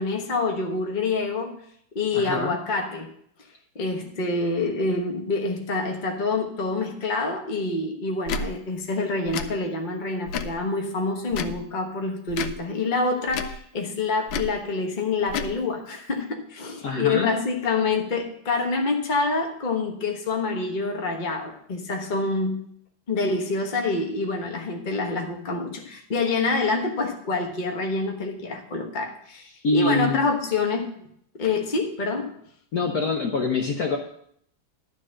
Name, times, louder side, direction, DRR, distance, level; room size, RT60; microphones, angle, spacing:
voice 1, 0.0-1.5 1.9-3.1 3.7-22.6 23.1-30.9 31.4-32.3, left 3 dB, 30° left, 2 dB, 1.1 m, -26 dB
voice 2, 2.1-2.6 16.8-17.3 29.6-30.3 32.7-34.0, left 3 dB, 55° left, 1 dB, 1.3 m, -25 dB
Tick / Tick-tock, 8.2-8.5 9.3-9.5 10.3-10.6 11.3-11.6 12.3-12.6 13.3-13.6 14.3-14.5 15.3-15.5, left 5 dB, 80° left, 1.4 m, -30 dB
12.0 x 4.2 x 7.5 m, 0.68 s
omnidirectional pair, 2.2 m